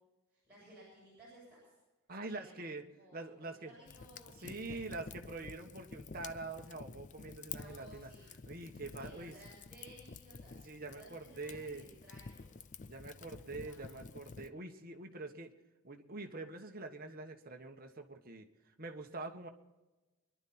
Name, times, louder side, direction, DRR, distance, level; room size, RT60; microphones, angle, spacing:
voice 1, 0.3-1.7 2.2-2.6 3.0-4.9 5.4-5.5 7.5-8.3 8.9-12.5 13.1-14.0, right 1 dB, 5° right, -9 dB, 7.2 m, -58 dB
voice 2, 2.1-2.8 3.1-3.7 4.4-8.1 8.4-9.3 10.6-11.8 12.9-15.5 15.8-18.5 18.8-19.5, right 3 dB, 40° right, 4 dB, 1.5 m, -45 dB
Fire, 3.9-14.5, left 5 dB, 35° left, 0.4 m, -50 dB
25.0 x 11.5 x 4.4 m, 1.1 s
head